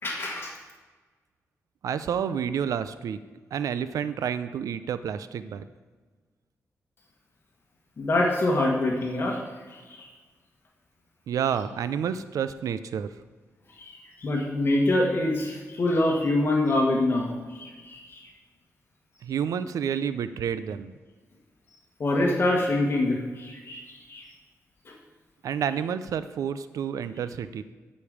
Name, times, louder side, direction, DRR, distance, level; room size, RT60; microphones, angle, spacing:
voice 1, 0.0-0.5 8.0-9.4 9.9-10.1 13.8-18.3 22.0-23.8 24.1-24.2, left 1 dB, 45° left, -1 dB, 1.6 m, -25 dB
voice 2, 1.8-3.2 3.5-5.7 11.3-13.1 19.2-20.9 25.4-27.6, right 8 dB, 90° right, 13 dB, 0.5 m, -29 dB
13.5 x 5.3 x 4.9 m, 1.4 s
wide cardioid pair, 115°, 6 cm